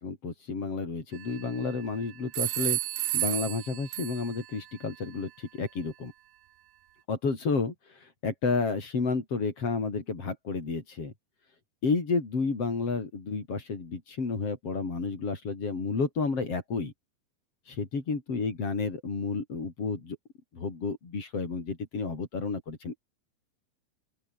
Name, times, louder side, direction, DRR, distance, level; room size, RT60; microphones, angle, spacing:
voice 1, 0.0-2.8 3.1-6.1 7.1-7.7 8.2-11.1 11.8-16.9 17.7-20.2 20.5-23.0, left 4 dB, 35° left, 5.3 m, -31 dB
sound 1, 1.1-1.8 2.3-4.5, right 14 dB, 65° right, 2.4 m, -32 dB
open air
omnidirectional pair, 4.9 m